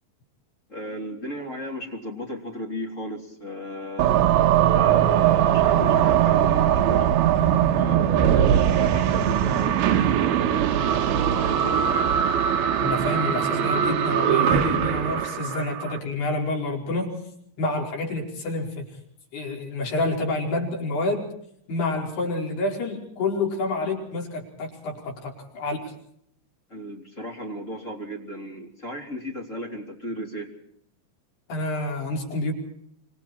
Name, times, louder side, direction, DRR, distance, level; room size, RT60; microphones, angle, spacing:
voice 1, 0.7-4.2 4.6-7.2 7.7-10.7 11.3-12.3 26.7-30.5, equal, 20° left, 1 dB, 3.5 m, -35 dB
sound 1, 4.0-16.0, right 10 dB, 70° right, 2.8 m, -21 dB
voice 2, 12.8-17.2 17.6-18.9 19.3-21.2 21.7-25.9 31.5-32.5, left 2 dB, 60° left, 0 dB, 6.8 m, -28 dB
26.5 x 25.5 x 4.4 m, 0.70 s
omnidirectional pair, 5.2 m